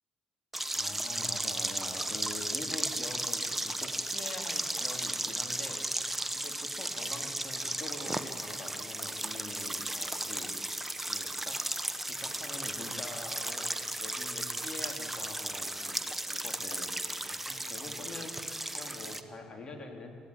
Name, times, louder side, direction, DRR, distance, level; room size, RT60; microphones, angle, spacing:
sound 1, 0.5-19.2, right 1 dB, 10° right, 1.5 m, -35 dB
voice 1, 0.7-5.8 6.3-10.6 11.1-11.6 12.1-13.7 14.0-16.0 16.3-16.9 17.2-18.4 18.7-20.1, left 2 dB, 35° left, 2 dB, 4.0 m, -45 dB
28.0 x 15.5 x 8.9 m, 2.3 s
figure-of-eight pair, 45°, 2 cm